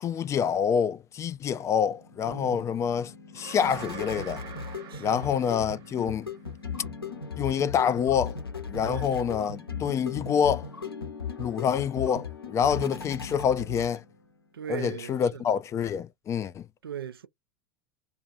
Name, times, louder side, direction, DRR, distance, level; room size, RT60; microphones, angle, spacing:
voice 1, 0.0-4.4 5.0-6.3 7.4-8.4 8.7-10.7 11.4-14.0 14.7-16.6, left 7 dB, 25° left, 0.4 m, -27 dB
sound 1, 1.8-14.3, left 6 dB, 85° left, 0.8 m, -38 dB
voice 2, 2.2-2.6 4.9-5.3 8.8-9.1 12.7-12.9 14.5-15.4 16.8-17.3, right 9 dB, 75° right, 0.4 m, -38 dB
sound 2, 3.4-6.5, right 8 dB, 35° right, 0.8 m, -45 dB
2.5 x 2.4 x 2.5 m
figure-of-eight pair, 85°, 12 cm